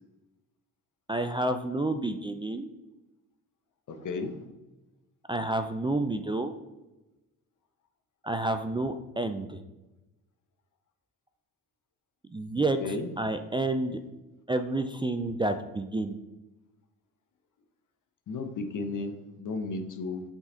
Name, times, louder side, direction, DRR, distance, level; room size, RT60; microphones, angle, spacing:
voice 1, 1.1-2.7 5.3-6.5 8.2-9.6 12.3-14.0 14.5-16.2, right 2 dB, 15° right, 8 dB, 0.4 m, -29 dB
voice 2, 3.9-4.3 12.5-13.1 18.3-20.2, left 3 dB, 55° left, 7 dB, 1.0 m, -34 dB
5.9 x 4.1 x 3.8 m, 1.0 s
supercardioid pair, 70°, 37 cm